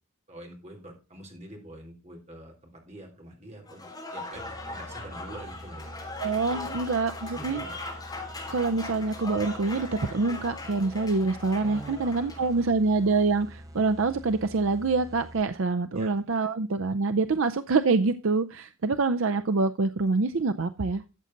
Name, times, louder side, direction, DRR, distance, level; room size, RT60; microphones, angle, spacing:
voice 1, 0.3-5.9 6.5-6.7 7.3-7.8 11.6-12.7 15.9-16.5, right 1 dB, 30° right, 2 dB, 3.6 m, -45 dB
Applause / Crowd, 3.7-12.5, left 2 dB, 20° left, 3.3 m, -39 dB
sound 1, 4.3-15.7, equal, 15° right, 0.9 m, -46 dB
voice 2, 6.2-7.6 8.5-21.1, right 3 dB, 60° right, 9 dB, 0.5 m, -26 dB
13.5 x 7.7 x 3.9 m, 0.29 s
head